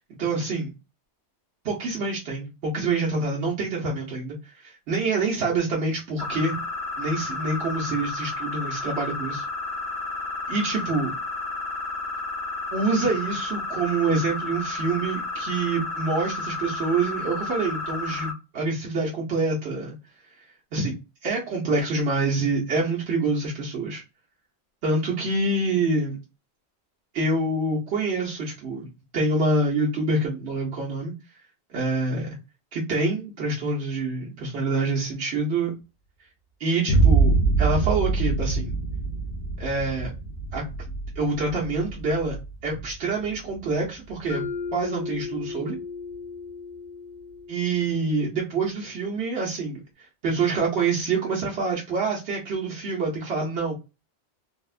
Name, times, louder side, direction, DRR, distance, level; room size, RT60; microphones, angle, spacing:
voice 1, 0.2-0.7 1.6-6.6 7.0-9.4 10.5-11.1 12.7-20.0 20.7-21.0 21.2-24.0 24.8-26.2 27.1-31.1 31.7-32.4 32.7-35.7 36.6-38.7 39.6-40.1 40.5-42.4 42.6-44.4 44.7-45.8 47.5-53.8, right 3 dB, 80° right, -4 dB, 1.1 m, -26 dB
sound 1, 6.2-18.3, left 3 dB, 30° left, 0.9 m, -32 dB
Boom, 36.9-44.7, right 3 dB, 75° left, 0.9 m, -25 dB
Mallet percussion, 44.3-48.3, left 5 dB, 10° right, 0.8 m, -35 dB
3.4 x 2.0 x 2.3 m, 0.28 s
omnidirectional pair, 1.1 m